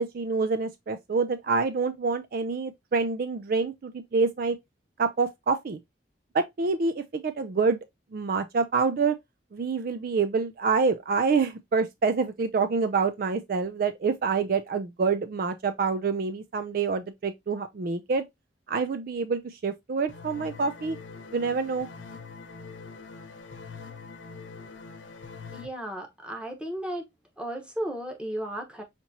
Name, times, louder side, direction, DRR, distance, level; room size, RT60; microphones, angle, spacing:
voice 1, 0.0-4.6 5.0-5.8 6.3-7.8 8.1-9.2 9.5-18.2 18.7-21.0 21.3-21.9, right 4 dB, 50° right, 0.4 m, -27 dB
sound 1, 20.1-25.7, left 4 dB, 80° left, 0.9 m, -43 dB
voice 2, 25.5-27.1 27.4-28.8, right 1 dB, 5° right, 0.9 m, -34 dB
5.8 x 2.9 x 2.7 m
head